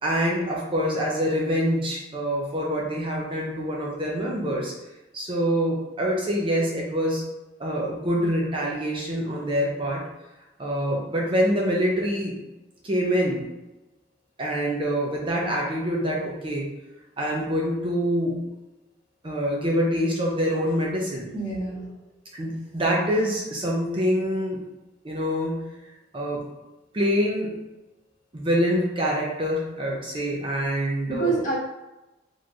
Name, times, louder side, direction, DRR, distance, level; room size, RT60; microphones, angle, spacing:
voice 1, 0.0-4.7 5.1-7.2 7.6-10.0 10.6-12.4 12.8-13.5 14.4-16.7 17.2-18.4 19.2-21.3 22.3-24.6 25.0-25.7 26.1-26.5 26.9-27.6 28.3-31.4, equal, 30° right, -3 dB, 0.6 m, -25 dB
voice 2, 21.3-21.9 31.1-31.6, right 3 dB, 45° left, -7 dB, 1.5 m, -27 dB
4.2 x 3.1 x 2.5 m, 1.0 s
head